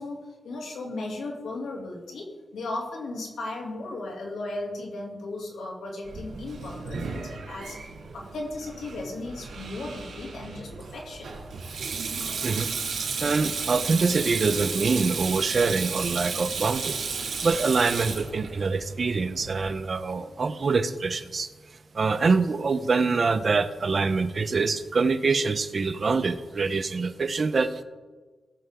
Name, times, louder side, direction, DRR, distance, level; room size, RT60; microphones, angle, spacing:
voice 1, 0.0-7.8 8.1-11.3, left 2 dB, 90° left, -1 dB, 2.6 m, -36 dB
Sink (filling or washing), 6.1-19.7, right 5 dB, 85° right, 2.5 m, -33 dB
voice 2, 13.2-17.1 17.4-21.5 21.9-27.8, right 4 dB, 50° right, 10 dB, 0.8 m, -25 dB
19.0 x 6.9 x 3.7 m, 1.3 s
cardioid pair, 75°, 0 cm